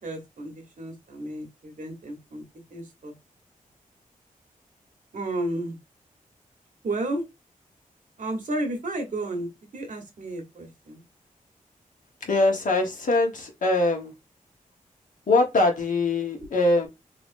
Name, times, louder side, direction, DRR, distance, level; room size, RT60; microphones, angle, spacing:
voice 1, 0.0-2.4 2.7-3.1 5.1-5.8 6.8-7.2 8.2-11.0, right 1 dB, 65° right, 1.3 m, -32 dB
voice 2, 12.2-14.1 15.3-16.9, left 2 dB, 65° left, 1.2 m, -22 dB
3.3 x 3.0 x 2.6 m
cardioid pair, 65°, 14 cm